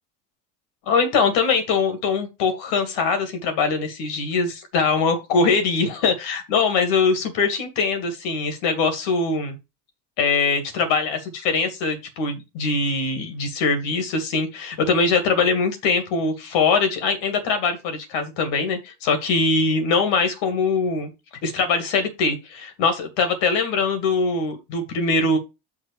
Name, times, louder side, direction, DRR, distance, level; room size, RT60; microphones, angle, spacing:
voice 1, 0.9-9.6 10.2-21.1 21.4-25.4, left 4 dB, 60° left, 8 dB, 2.5 m, -22 dB
6.0 x 4.3 x 6.5 m, 0.25 s
hypercardioid pair, 70°, 49 cm